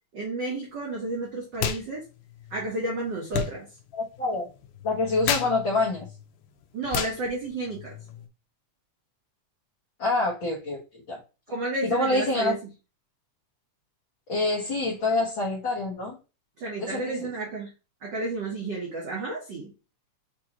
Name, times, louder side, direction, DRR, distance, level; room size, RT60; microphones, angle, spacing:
voice 1, 0.1-2.0 2.5-3.7 6.7-8.0 11.5-12.6 16.6-17.7 18.0-19.7, right 2 dB, 85° right, -2 dB, 0.9 m, -31 dB
sound 1, 1.5-1.8 2.1-8.3, left 9 dB, 85° left, 2.2 m, -34 dB
voice 2, 3.9-4.5 4.8-6.1 10.0-10.8 11.1-11.2 11.8-12.5 14.3-16.2 16.8-17.3, left 2 dB, 55° left, -5 dB, 1.5 m, -26 dB
6.6 x 2.7 x 2.9 m, 0.30 s
omnidirectional pair, 3.6 m